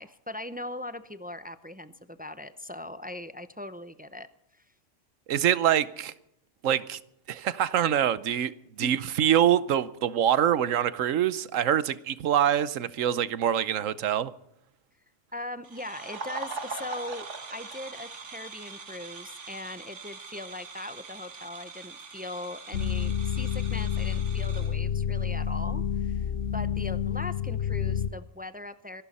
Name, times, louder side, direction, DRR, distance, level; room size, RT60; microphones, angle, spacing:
voice 1, 0.0-4.3 4.5-4.6 8.8-8.9 15.3-29.0, left 1 dB, 15° right, 0.3 m, -40 dB
voice 2, 5.3-6.1 6.6-7.0 7.3-8.5 8.8-14.3, right 10 dB, 90° right, 1.2 m, -25 dB
sound 1, 15.6-24.7, right 4 dB, 70° right, 1.9 m, -42 dB
sound 2, 22.7-28.1, left 8 dB, 70° left, 1.1 m, -29 dB
25.5 x 12.0 x 4.2 m
omnidirectional pair, 1.3 m